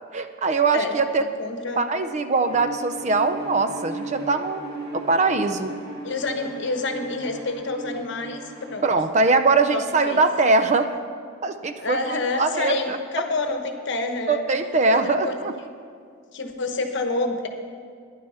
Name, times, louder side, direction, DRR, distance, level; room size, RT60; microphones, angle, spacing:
voice 1, 0.1-1.2 1.8-4.6 4.9-5.7 8.8-10.9 11.4-13.0 14.3-15.5, right 3 dB, 35° right, 9 dB, 0.5 m, -22 dB
voice 2, 0.7-1.8 6.0-8.4 8.7-8.8 9.7-10.2 11.8-14.4 14.9-15.3 15.6-15.7 16.3-17.5, left 3 dB, 60° left, 5 dB, 1.0 m, -28 dB
Bowed string instrument, 2.4-9.0, right 2 dB, 50° right, 2.7 m, -37 dB
11.5 x 10.0 x 5.6 m, 2.2 s
head